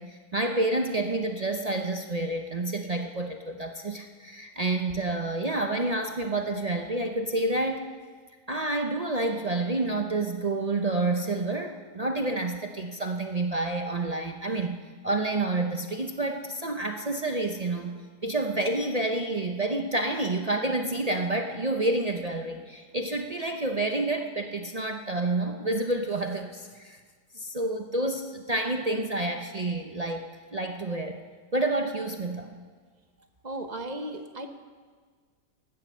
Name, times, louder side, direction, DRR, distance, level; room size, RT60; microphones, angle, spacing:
voice 1, 0.0-7.9 8.5-18.0 18.2-27.0 27.3-30.3 30.5-31.2 31.5-32.6, right 2 dB, 60° right, 4 dB, 0.4 m, -29 dB
voice 2, 33.4-34.5, right 1 dB, 30° right, 6 dB, 0.9 m, -35 dB
16.0 x 12.5 x 6.3 m, 1.5 s
omnidirectional pair, 1.9 m